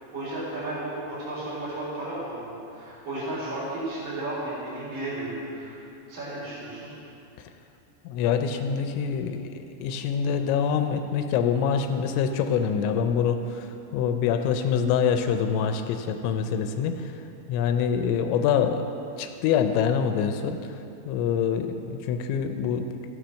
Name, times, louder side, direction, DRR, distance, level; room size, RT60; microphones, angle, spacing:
voice 1, 0.1-5.7 6.1-6.9, right 1 dB, 45° right, -13 dB, 4.7 m, -33 dB
voice 2, 8.1-9.5 9.8-17.1 17.5-18.9 19.2-20.6 21.1-22.9, left 7 dB, 90° left, 7 dB, 3.0 m, -25 dB
13.5 x 9.2 x 6.3 m, 2.7 s
omnidirectional pair, 5.2 m